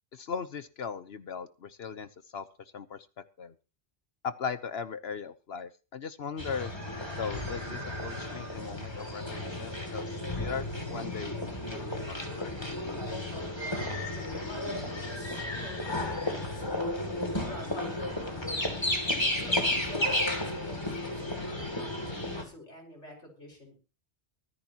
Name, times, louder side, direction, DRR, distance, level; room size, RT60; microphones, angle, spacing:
voice 1, 0.1-2.5 2.7-3.1 3.4-3.5 4.2-6.7 7.1-11.3 11.7-12.0 12.3-12.5, left 6 dB, 65° left, 13 dB, 1.1 m, -38 dB
sound 1, 6.4-22.4, left 1 dB, 25° left, 2.7 m, -33 dB
voice 2, 13.8-17.1 17.4-18.9 19.4-23.8, left 1 dB, 90° left, 0 dB, 5.9 m, -48 dB
24.5 x 9.8 x 2.9 m, 0.32 s
omnidirectional pair, 1.2 m